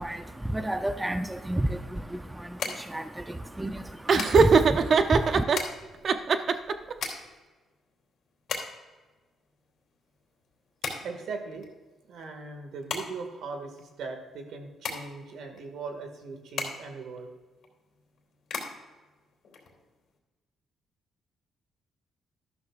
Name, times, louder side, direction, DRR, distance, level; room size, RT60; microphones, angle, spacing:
voice 1, 0.0-5.4, right 1 dB, 10° right, 9 dB, 0.6 m, -31 dB
sound 1, 1.3-20.2, left 5 dB, 65° left, 2.9 m, -40 dB
Laughter, 4.1-5.6 6.0-6.9, right 5 dB, 50° right, 0.7 m, -21 dB
voice 2, 11.0-11.7 12.1-17.3, right 4 dB, 75° right, 5 dB, 2.0 m, -39 dB
12.5 x 12.5 x 2.5 m, 1.3 s
cardioid pair, 90°, 0 cm